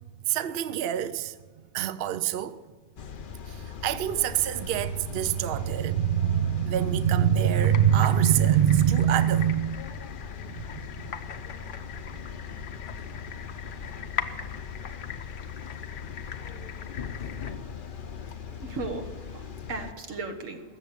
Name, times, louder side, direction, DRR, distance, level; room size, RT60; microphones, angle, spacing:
voice 1, 0.3-1.4 1.7-2.6 3.5-10.1 10.5-11.2 11.8-12.2, right 10 dB, 60° right, 0.7 m, -25 dB
sound 1, 3.0-19.9, left 7 dB, 50° left, 0.8 m, -40 dB
sound 2, 7.5-17.5, left 9 dB, 75° left, 1.1 m, -41 dB
voice 2, 18.5-20.6, right 3 dB, 85° right, 1.8 m, -36 dB
15.0 x 7.0 x 9.9 m
omnidirectional pair, 1.3 m